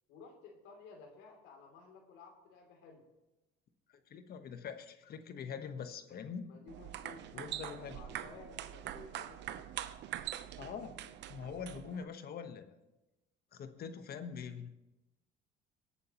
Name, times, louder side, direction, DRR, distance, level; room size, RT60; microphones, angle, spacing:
voice 1, 0.1-3.0 6.4-9.7, left 4 dB, 80° left, 2 dB, 2.9 m, -55 dB
voice 2, 4.1-6.6 7.3-8.0 10.6-12.8 13.5-14.7, left 6 dB, 50° left, 9 dB, 1.1 m, -44 dB
sound 1, 6.7-12.0, right 12 dB, 65° right, 0.7 m, -44 dB
24.0 x 8.5 x 3.0 m, 0.99 s
supercardioid pair, 90°, 20 cm